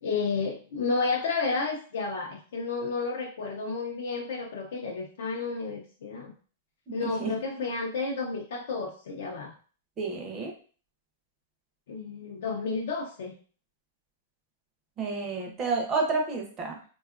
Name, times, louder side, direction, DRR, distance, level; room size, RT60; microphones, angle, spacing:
voice 1, 0.0-6.3 6.9-9.5 11.9-13.4, left 4 dB, 65° left, 0 dB, 0.5 m, -31 dB
voice 2, 7.0-7.3 10.0-10.5 15.0-16.9, right 4 dB, 15° right, 1 dB, 0.5 m, -30 dB
3.5 x 2.3 x 2.4 m, 0.41 s
supercardioid pair, 175°, 0 cm